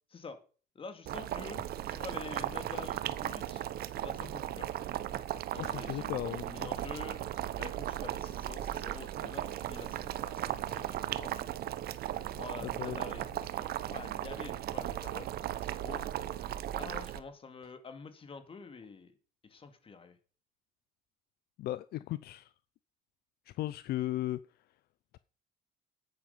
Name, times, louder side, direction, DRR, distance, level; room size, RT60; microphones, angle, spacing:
voice 1, 0.7-3.6 4.0-4.7 5.5-7.2 7.6-11.4 12.3-15.3 15.6-16.0 16.7-19.2 19.4-20.2, left 5 dB, 35° left, 2.3 m, -47 dB
Boiling, 1.1-17.2, right 12 dB, 65° right, 0.9 m, -37 dB
voice 2, 5.5-6.7 12.6-13.0 21.6-22.5 23.5-24.4, left 15 dB, 70° left, 0.5 m, -36 dB
10.5 x 10.0 x 5.5 m
cardioid pair, 110°, 17 cm